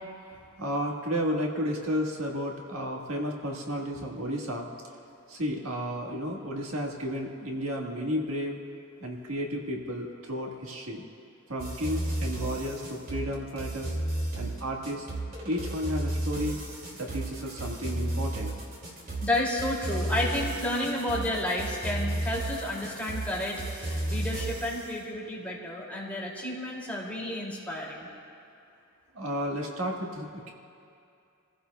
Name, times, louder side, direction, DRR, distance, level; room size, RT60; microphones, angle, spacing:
voice 1, 0.6-4.7 5.3-8.6 9.0-11.0 11.5-13.9 14.3-15.1 15.4-16.6 17.0-18.7 29.1-30.5, equal, 70° right, -1 dB, 1.6 m, -32 dB
sound 1, 11.6-24.8, right 1 dB, 45° right, 2.4 m, -33 dB
voice 2, 19.2-28.1, left 1 dB, 5° left, -5 dB, 2.6 m, -31 dB
28.5 x 15.5 x 2.3 m, 2.6 s
head